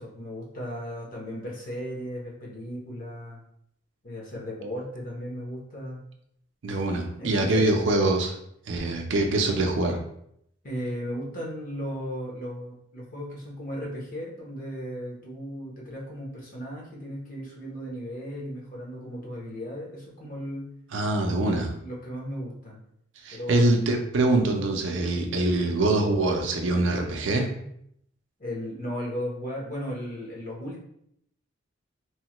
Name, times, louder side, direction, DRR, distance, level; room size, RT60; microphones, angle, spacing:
voice 1, 0.0-3.4 4.0-6.0 7.2-7.7 10.6-20.7 21.2-21.5 21.8-22.8 23.3-23.7 25.0-25.3 28.4-30.8, equal, 45° left, -3 dB, 0.8 m, -36 dB
voice 2, 6.6-8.4 8.7-10.0 20.9-21.7 23.2-27.5, right 2 dB, 65° right, 2 dB, 0.5 m, -24 dB
3.1 x 2.1 x 2.9 m, 0.73 s
head